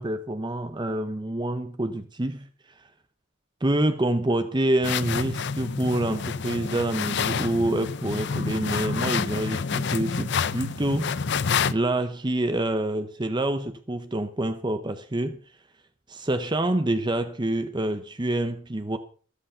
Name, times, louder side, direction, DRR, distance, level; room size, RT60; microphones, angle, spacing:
voice 1, 0.0-2.5 2.8-2.9 3.6-11.1 11.7-15.4 16.1-19.0, right 1 dB, 20° right, 0.7 m, -27 dB
sound 1, 4.8-11.7, left 6 dB, 55° left, 0.6 m, -28 dB
13.5 x 13.0 x 5.6 m
head